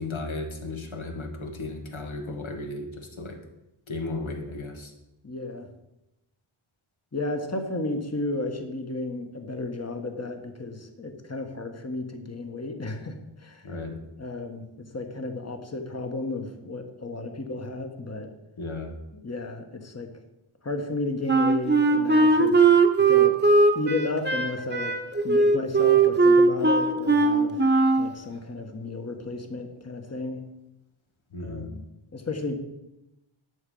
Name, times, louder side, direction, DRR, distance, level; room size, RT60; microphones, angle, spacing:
voice 1, 0.0-3.4 3.9-4.9 13.6-14.0 18.6-19.0 31.3-31.7, left 2 dB, 70° left, 3 dB, 1.9 m, -35 dB
voice 2, 5.2-5.7 7.1-13.7 14.2-18.3 19.2-20.1 20.6-22.6 23.1-23.3 23.7-24.9 25.2-27.6 28.0-30.4 31.4-31.8 32.1-32.5, left 2 dB, 30° left, 5 dB, 1.4 m, -33 dB
Wind instrument woodwind instrument, 21.3-28.1, right 3 dB, 20° right, 1.0 m, -19 dB
11.0 x 7.3 x 5.5 m, 0.92 s
wide cardioid pair, 85°, 49 cm